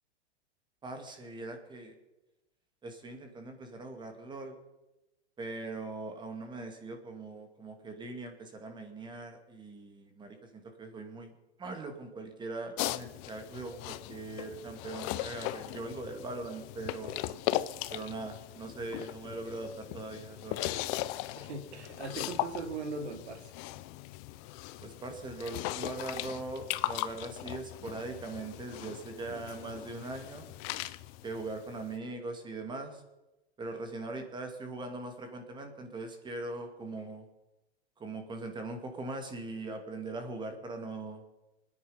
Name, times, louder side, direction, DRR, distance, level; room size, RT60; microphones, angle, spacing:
voice 1, 0.8-1.9 2.8-4.6 5.4-11.3 11.6-17.2 17.9-20.6 24.8-30.5 31.2-33.0 33.6-37.3 38.0-41.2, right 2 dB, 15° right, 5 dB, 2.1 m, -41 dB
sound 1, 12.8-32.0, left 16 dB, 30° left, 0.6 m, -38 dB
voice 2, 21.4-23.5, right 3 dB, 80° right, 6 dB, 3.2 m, -39 dB
25.0 x 10.0 x 5.5 m, 0.99 s
hypercardioid pair, 145°, 33 cm